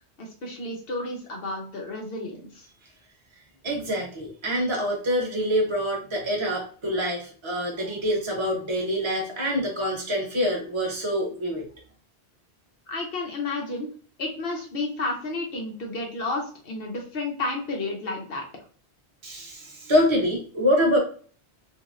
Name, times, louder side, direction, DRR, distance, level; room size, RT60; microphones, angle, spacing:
voice 1, 0.2-2.7 12.9-13.9 14.2-18.4, left 2 dB, 65° left, 0 dB, 0.9 m, -31 dB
voice 2, 3.6-11.7 19.2-21.0, equal, 30° right, -2 dB, 0.9 m, -25 dB
3.0 x 2.6 x 2.5 m, 0.43 s
omnidirectional pair, 1.1 m